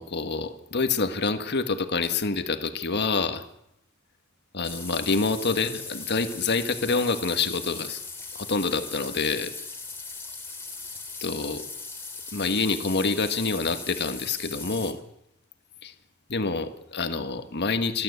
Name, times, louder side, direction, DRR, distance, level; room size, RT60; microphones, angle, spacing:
voice 1, 0.0-3.5 4.5-8.0 8.3-9.5 11.2-11.7 12.3-15.0 15.8-15.9 16.3-18.0, left 4 dB, 55° left, 9 dB, 1.6 m, -27 dB
sound 1, 4.6-14.9, left 4 dB, 10° left, 2.6 m, -39 dB
28.0 x 12.5 x 8.1 m, 0.80 s
head